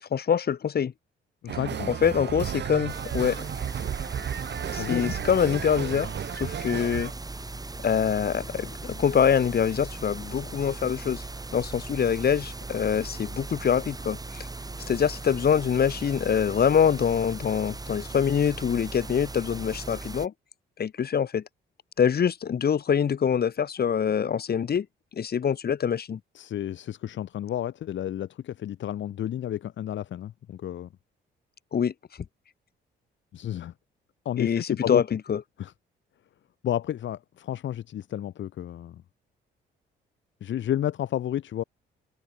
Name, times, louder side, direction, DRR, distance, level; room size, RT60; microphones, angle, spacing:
voice 1, 0.1-0.9 1.9-3.4 4.7-7.1 7.8-11.2 11.5-14.5 14.9-20.3 20.8-21.4 22.0-24.9 25.2-26.2 31.7-31.9 34.4-35.4, left 7 dB, 50° left, 6.1 m, -25 dB
voice 2, 1.4-1.9 4.8-5.1 26.3-30.9 33.3-33.7 34.2-35.0 35.6-35.7 36.6-39.0 40.4-41.6, left 11 dB, 70° left, 3.3 m, -31 dB
sound 1, 1.5-7.1, right 9 dB, 60° right, 7.6 m, -33 dB
sound 2, 2.9-20.3, right 3 dB, 20° right, 4.3 m, -38 dB
cardioid pair, 90°, 20 cm